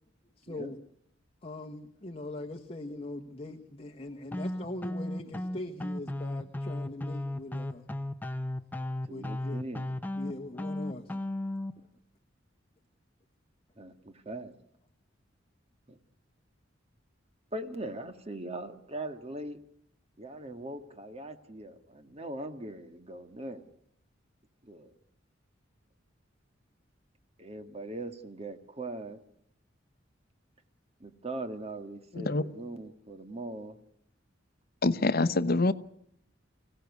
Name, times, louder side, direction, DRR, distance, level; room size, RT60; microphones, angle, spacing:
voice 1, 0.4-0.8 1.4-7.9 9.1-9.6 10.2-11.1, left 2 dB, 30° left, 3 dB, 1.3 m, -41 dB
sound 1, 4.3-11.7, left 1 dB, 10° left, 0.8 m, -35 dB
voice 2, 9.0-9.9 13.8-14.5 15.9-16.0 17.5-19.6 20.2-23.6 24.6-24.9 27.4-29.2 31.0-33.8, right 2 dB, 35° right, 7 dB, 1.7 m, -40 dB
voice 3, 34.8-35.7, left 2 dB, 50° left, 14 dB, 0.9 m, -25 dB
25.0 x 16.5 x 8.3 m, 0.72 s
head